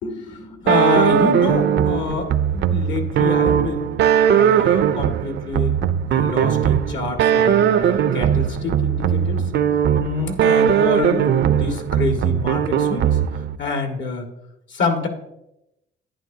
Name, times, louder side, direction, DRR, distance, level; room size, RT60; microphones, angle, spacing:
voice 1, 0.0-3.9 4.3-5.7 6.1-9.5 10.0-13.2 13.6-14.3 14.7-15.1, left 4 dB, 75° left, 3 dB, 1.9 m, -26 dB
sound 1, 0.7-13.6, right 9 dB, 65° right, 0.5 m, -19 dB
11.0 x 9.6 x 2.8 m, 0.85 s
cardioid pair, 90°, 20 cm